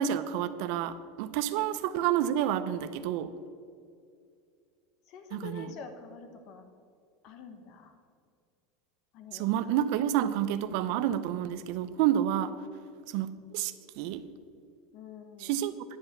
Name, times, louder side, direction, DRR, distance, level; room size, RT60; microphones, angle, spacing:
voice 1, 0.0-3.3 5.3-5.7 9.3-12.6 13.1-14.2 15.4-15.7, right 11 dB, 45° right, 12 dB, 0.5 m, -29 dB
voice 2, 5.1-6.7 7.2-7.9 9.1-9.5 14.9-15.6, left 5 dB, 35° left, 7 dB, 1.0 m, -46 dB
10.0 x 5.6 x 7.1 m, 2.3 s
supercardioid pair, 180°, 0 cm